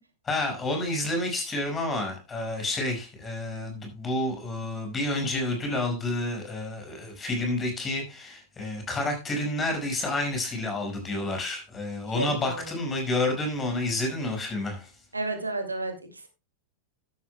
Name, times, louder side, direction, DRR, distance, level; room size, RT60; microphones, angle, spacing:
voice 1, 0.3-14.9, left 2 dB, 20° left, 5.6 m, -29 dB
voice 2, 12.2-12.7 15.1-16.3, right 2 dB, 80° right, 2.1 m, -32 dB
14.0 x 11.5 x 2.2 m
figure-of-eight pair, 90°, 0 cm